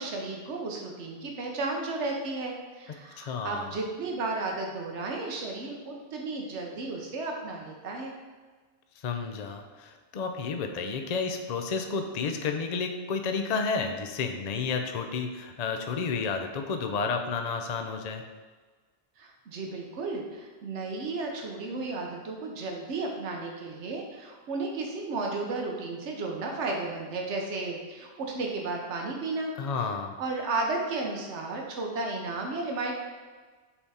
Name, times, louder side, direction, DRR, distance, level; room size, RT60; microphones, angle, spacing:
voice 1, 0.0-8.1 19.2-29.5 30.2-32.9, right 3 dB, 80° right, 1 dB, 1.2 m, -33 dB
voice 2, 3.2-3.8 9.0-18.2 29.6-30.1, left 5 dB, 50° left, 5 dB, 0.5 m, -31 dB
7.0 x 3.6 x 4.2 m, 1.4 s
omnidirectional pair, 1.2 m